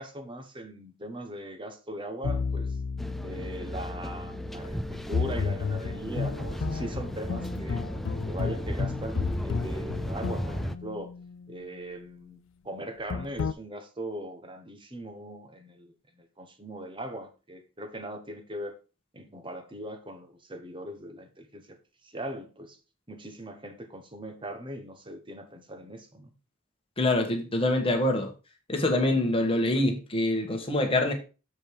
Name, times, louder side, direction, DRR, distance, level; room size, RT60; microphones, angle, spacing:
voice 1, 0.0-2.8 3.2-7.8 8.3-11.1 11.5-12.4 12.6-18.8 19.1-21.8 22.0-22.8 23.1-26.3, right 1 dB, 25° right, 1.2 m, -40 dB
sound 1, 2.2-11.6 13.1-13.5, left 5 dB, 65° left, 0.4 m, -33 dB
sound 2, 3.0-10.8, equal, ahead, 0.4 m, -36 dB
voice 2, 27.0-28.3 28.7-31.1, left 1 dB, 25° left, 1.5 m, -25 dB
7.2 x 5.2 x 4.8 m
head